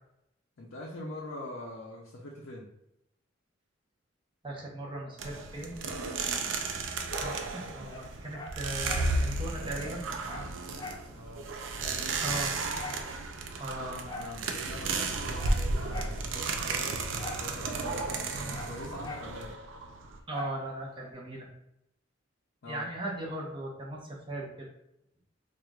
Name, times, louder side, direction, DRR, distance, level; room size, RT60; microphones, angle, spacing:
voice 1, 0.6-2.7 11.1-12.5 14.1-18.0 18.4-19.5 22.6-22.9, left 1 dB, 85° left, -3 dB, 0.6 m, -44 dB
voice 2, 4.4-5.9 7.2-10.1 12.2-12.5 13.6-14.0 20.3-21.5 22.7-24.7, right 1 dB, 25° right, -3 dB, 0.8 m, -38 dB
sound 1, 5.2-20.2, right 3 dB, 75° right, 0.4 m, -33 dB
Dog, 7.9-9.1 9.5-9.6 9.8-11.1 11.4-11.5 11.8-13.1 14.0-14.4 14.9-16.2 17.2-17.5 17.8-19.3 20.3-20.6 21.1-21.2, left 2 dB, 20° left, 0.4 m, -43 dB
4.4 x 2.4 x 2.3 m, 0.81 s
head